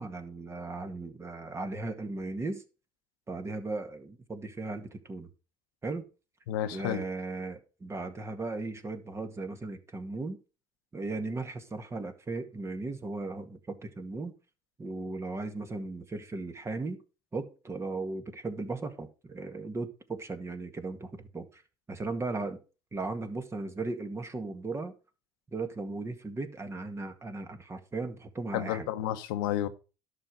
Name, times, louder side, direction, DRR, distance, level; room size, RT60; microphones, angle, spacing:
voice 1, 0.0-2.6 3.3-5.3 5.8-6.1 6.7-10.4 10.9-14.3 14.8-17.0 17.3-21.6 21.9-22.6 22.9-24.9 25.5-28.9, right 3 dB, 25° right, 1.9 m, -37 dB
voice 2, 6.5-7.0 28.5-29.7, left 11 dB, 85° left, 1.0 m, -31 dB
11.0 x 6.3 x 5.2 m
supercardioid pair, 80°, 12 cm